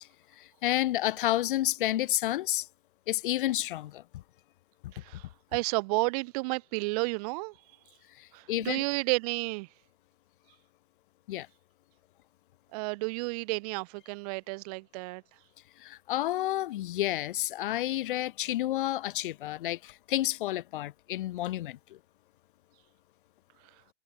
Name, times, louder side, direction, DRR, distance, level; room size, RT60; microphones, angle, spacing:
voice 1, 0.4-2.7 3.1-4.0 4.8-4.9 8.2-8.8 11.3-11.5 15.8-22.0, left 14 dB, 45° left, 6.3 m, -30 dB
voice 2, 4.9-5.2 5.5-7.5 8.3-9.7 12.7-15.2, right 27 dB, 30° right, 3.5 m, -31 dB
hypercardioid pair, 155°, 36 cm